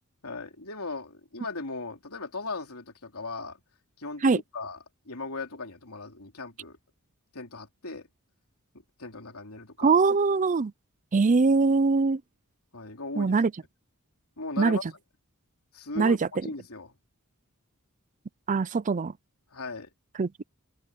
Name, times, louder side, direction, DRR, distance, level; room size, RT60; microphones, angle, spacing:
voice 1, 0.2-3.6 4.0-4.8 5.1-6.8 7.3-8.1 9.0-9.9 12.7-13.3 14.4-14.8 15.7-16.2 16.4-16.9 19.5-19.9, left 3 dB, 75° left, 3.5 m, -37 dB
voice 2, 9.8-10.7 11.1-12.2 13.2-13.5 14.6-14.9 16.0-16.2 18.5-19.1 20.2-20.3, right 4 dB, 35° right, 0.5 m, -22 dB
head